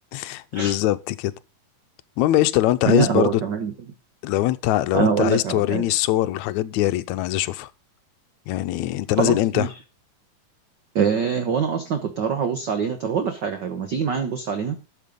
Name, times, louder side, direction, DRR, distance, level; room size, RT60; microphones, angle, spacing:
voice 1, 0.1-1.3 2.2-3.4 4.2-7.7 8.5-9.7, left 15 dB, 80° left, 2.0 m, -22 dB
voice 2, 2.9-3.7 4.9-5.8 9.2-9.7 10.9-14.8, right 6 dB, 60° right, 1.2 m, -24 dB
12.5 x 6.5 x 5.3 m
omnidirectional pair, 3.4 m